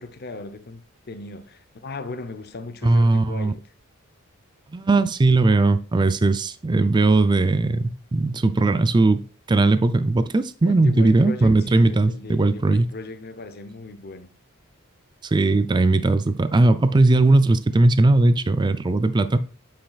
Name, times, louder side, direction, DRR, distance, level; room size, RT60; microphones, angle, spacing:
voice 1, 0.0-3.6 10.6-14.3, left 3 dB, 45° left, 0.7 m, -37 dB
voice 2, 2.8-3.5 4.7-9.2 9.5-12.9 15.3-19.4, right 2 dB, 20° right, 0.3 m, -18 dB
8.5 x 5.7 x 2.4 m
head